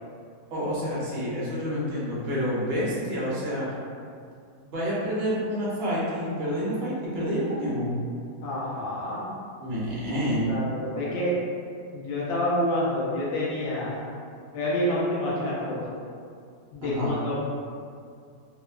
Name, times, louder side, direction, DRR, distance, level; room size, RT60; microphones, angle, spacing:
voice 1, 0.5-3.7 4.7-7.9 9.6-10.6 16.8-17.1, equal, 55° right, -8 dB, 0.7 m, -28 dB
voice 2, 8.4-9.3 10.5-11.3 11.9-14.1 14.5-15.9 16.7-17.4, left 1 dB, 75° left, -7 dB, 0.6 m, -28 dB
2.8 x 2.1 x 2.3 m, 2.3 s
omnidirectional pair, 1.8 m